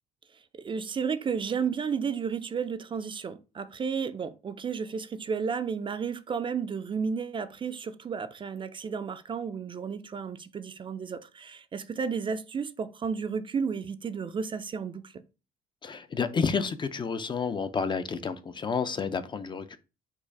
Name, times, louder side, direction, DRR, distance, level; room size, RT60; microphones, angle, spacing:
voice 1, 0.6-15.2, right 6 dB, 30° right, 0.4 m, -32 dB
voice 2, 15.8-19.8, left 5 dB, 30° left, 0.4 m, -30 dB
4.6 x 2.4 x 4.5 m
cardioid pair, 110°, 17 cm